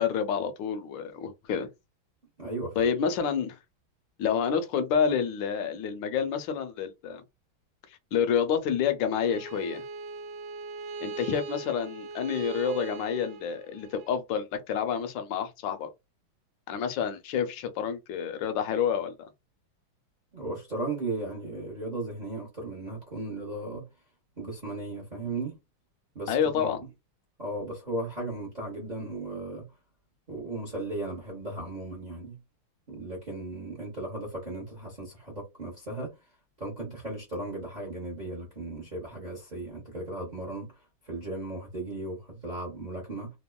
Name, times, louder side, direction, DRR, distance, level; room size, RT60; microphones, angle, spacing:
voice 1, 0.0-1.7 2.8-3.6 4.2-7.2 8.1-9.8 11.0-15.9 16.7-19.1 26.3-26.8, left 7 dB, 75° left, 1.2 m, -28 dB
voice 2, 2.4-2.9 20.3-23.8 24.4-25.6 26.1-26.8 27.4-29.6 30.3-32.4 32.9-36.1 36.6-40.7 41.0-43.3, right 2 dB, 50° right, 0.5 m, -36 dB
Bowed string instrument, 9.1-14.1, right 4 dB, 80° right, 1.3 m, -40 dB
3.4 x 2.1 x 2.2 m
omnidirectional pair, 2.2 m